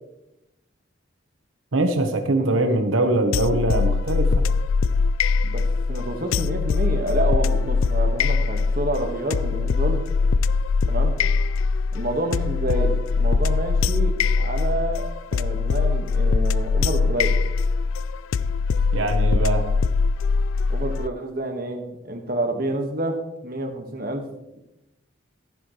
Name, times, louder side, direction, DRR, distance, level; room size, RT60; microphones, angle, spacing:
voice 1, 1.7-4.4 18.9-19.7, right 2 dB, 90° right, 6 dB, 1.1 m, -22 dB
voice 2, 2.4-2.8 5.4-10.0 10.9-11.1 11.9-17.4 20.7-24.3 24.5-24.6, right 1 dB, 45° right, 4 dB, 1.5 m, -28 dB
sound 1, 3.3-21.1, left 4 dB, 90° left, 0.4 m, -22 dB
14.0 x 10.5 x 3.2 m, 0.90 s
head